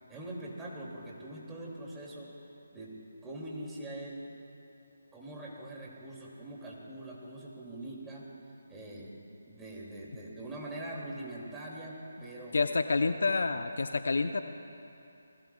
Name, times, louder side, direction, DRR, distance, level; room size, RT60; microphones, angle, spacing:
voice 1, 0.1-2.3 2.7-2.9 3.2-4.3 5.1-8.3 8.7-9.1 9.5-12.7, right 1 dB, 10° right, -4 dB, 2.6 m, -43 dB
voice 2, 12.5-14.4, left 3 dB, 65° left, 8 dB, 0.7 m, -28 dB
28.0 x 20.0 x 2.4 m, 2.8 s
figure-of-eight pair, 150°, 0 cm